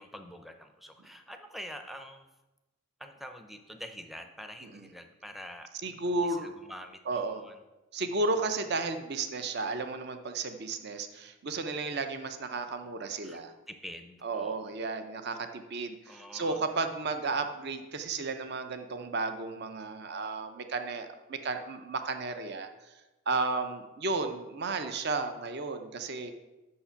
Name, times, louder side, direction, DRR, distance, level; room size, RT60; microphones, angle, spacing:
voice 1, 0.0-2.3 3.0-7.6 13.2-13.4 13.7-14.9 16.1-16.6 23.3-23.6, equal, ahead, 6 dB, 0.5 m, -46 dB
voice 2, 5.8-6.5 7.1-7.4 7.9-13.5 14.2-22.9 23.3-26.3, right 3 dB, 50° right, 8 dB, 0.6 m, -33 dB
8.5 x 6.6 x 5.7 m, 1.1 s
head